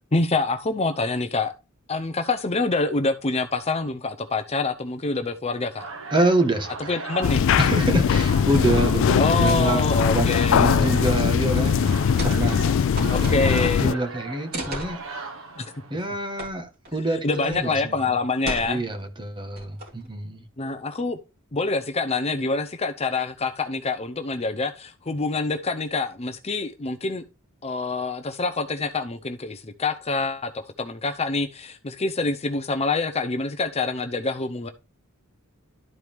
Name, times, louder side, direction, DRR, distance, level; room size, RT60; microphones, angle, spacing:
voice 1, 0.1-1.5 1.9-5.9 6.9-7.4 9.2-11.0 13.1-14.0 15.6-15.7 17.2-18.8 20.6-21.2 21.5-27.2 27.6-34.7, left 3 dB, 30° left, 0.7 m, -26 dB
sound 1, 5.8-16.2, right 3 dB, 70° right, 1.3 m, -37 dB
voice 2, 6.1-7.0 7.6-11.9 12.2-12.6 13.0-15.0 15.9-18.2 18.6-20.5, right 2 dB, 25° right, 1.3 m, -26 dB
sound 2, 7.2-13.9, left 7 dB, 65° left, 0.3 m, -21 dB
sound 3, 12.1-12.5 12.7-13.8 14.5-14.9 16.4-16.5 16.8-17.0 17.5-17.7 18.4-19.0 19.6-20.1, right 1 dB, 50° right, 3.2 m, -34 dB
12.0 x 4.7 x 3.5 m
head